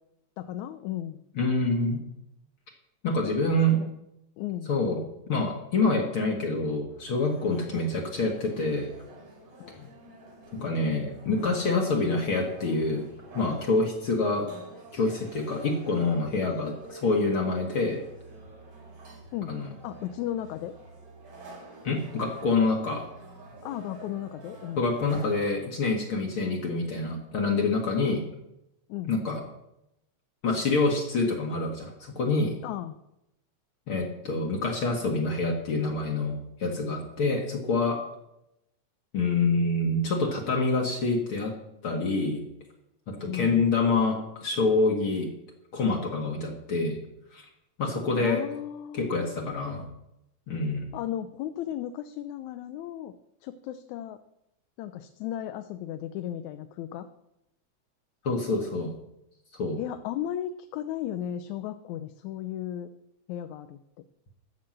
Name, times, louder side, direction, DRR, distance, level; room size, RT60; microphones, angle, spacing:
voice 1, 0.4-1.2 3.7-4.0 4.4-4.7 9.6-9.9 19.3-19.6 19.8-20.7 23.6-24.9 28.9-29.2 32.6-33.0 43.2-43.7 48.2-49.9 50.9-53.1 53.4-54.2 54.8-57.1 59.8-62.9 63.3-63.8, left 11 dB, 85° left, 9 dB, 2.0 m, -35 dB
voice 2, 1.4-2.0 3.0-3.8 4.7-5.0 5.3-8.9 10.5-13.0 13.3-14.5 14.9-18.0 19.5-19.7 21.8-23.0 24.8-28.2 29.1-29.4 30.4-32.5 33.9-38.0 39.1-41.5 41.8-42.4 43.1-45.3 45.7-47.0 47.3-47.4 47.8-48.4 48.9-49.8 50.5-50.9 58.2-58.9 59.6-59.8, left 3 dB, 50° left, 1 dB, 2.1 m, -26 dB
sound 1, 6.9-25.3, right 2 dB, 80° right, 5.5 m, -48 dB
13.5 x 6.6 x 7.6 m, 0.86 s
omnidirectional pair, 3.3 m